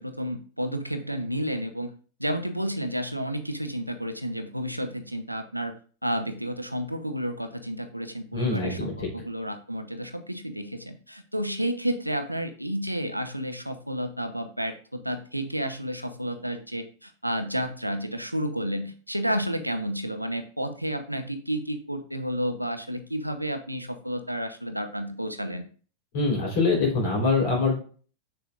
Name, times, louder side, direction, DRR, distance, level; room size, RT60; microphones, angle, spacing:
voice 1, 0.0-1.9 2.2-5.7 6.0-25.7, equal, 90° right, 8 dB, 0.7 m, -31 dB
voice 2, 8.3-9.1 26.1-27.8, left 3 dB, 55° left, 0 dB, 3.7 m, -24 dB
7.0 x 6.6 x 2.4 m, 0.40 s
figure-of-eight pair, 90°, 0 cm